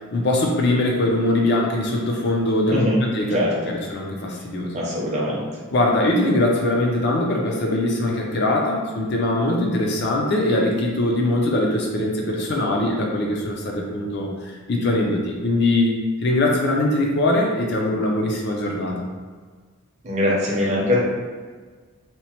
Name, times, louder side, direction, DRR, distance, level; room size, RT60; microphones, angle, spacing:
voice 1, 0.1-2.8 3.1-3.4 3.7-4.8 5.7-16.0 16.2-19.1, left 1 dB, 50° left, -1 dB, 0.5 m, -22 dB
voice 2, 2.7-3.0 3.3-3.7 4.7-5.4 20.0-21.0, left 1 dB, 30° right, -4 dB, 0.6 m, -22 dB
2.9 x 2.1 x 2.8 m, 1.5 s
head